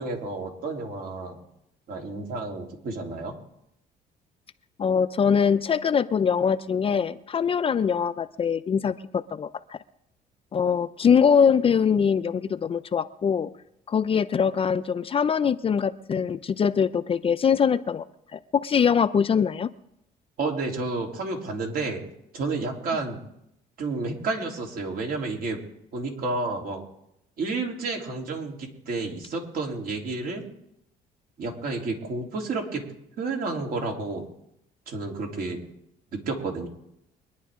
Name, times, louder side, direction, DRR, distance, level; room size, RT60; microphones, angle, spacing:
voice 1, 0.0-1.4 1.9-3.3 20.4-22.0 22.3-23.2 23.8-25.6 25.9-26.8 27.4-30.4 31.4-32.8 33.2-34.2 34.9-35.6 36.1-36.7, right 3 dB, 60° right, 1 dB, 3.3 m, -30 dB
voice 2, 4.8-9.8 10.5-13.5 13.9-18.0 18.3-19.7, left 7 dB, 35° left, 12 dB, 0.5 m, -23 dB
24.0 x 10.5 x 3.7 m, 0.80 s
cardioid pair, 110°, 17 cm